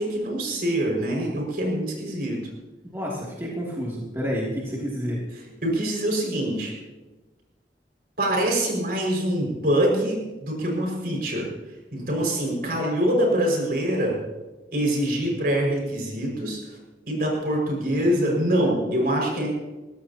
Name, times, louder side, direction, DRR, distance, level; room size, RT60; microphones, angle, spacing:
voice 1, 0.0-2.4 5.6-6.7 8.2-11.5 11.9-14.2 14.7-16.6 17.1-19.5, right 1 dB, 55° right, -1 dB, 5.5 m, -24 dB
voice 2, 2.9-5.2, equal, 15° right, -5 dB, 2.6 m, -29 dB
22.0 x 16.5 x 2.9 m, 1.1 s
head